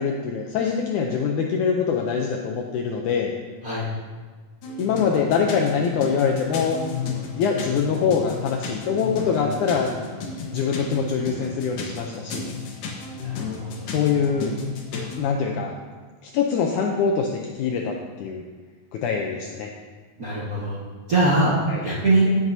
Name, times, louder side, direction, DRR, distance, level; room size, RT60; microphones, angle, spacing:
voice 1, 0.0-3.3 4.8-6.8 7.4-9.9 10.4-12.5 13.9-14.5 15.2-15.7 16.2-18.4 18.9-19.7 21.7-21.8, left 6 dB, 85° left, 1 dB, 1.7 m, -24 dB
sound 1, 4.6-15.2, left 5 dB, 70° left, 2.7 m, -33 dB
voice 2, 13.1-13.9 20.2-20.8 21.1-21.5 21.8-22.3, right 2 dB, 60° right, -8 dB, 0.9 m, -22 dB
16.5 x 7.5 x 2.7 m, 1.4 s
omnidirectional pair, 4.3 m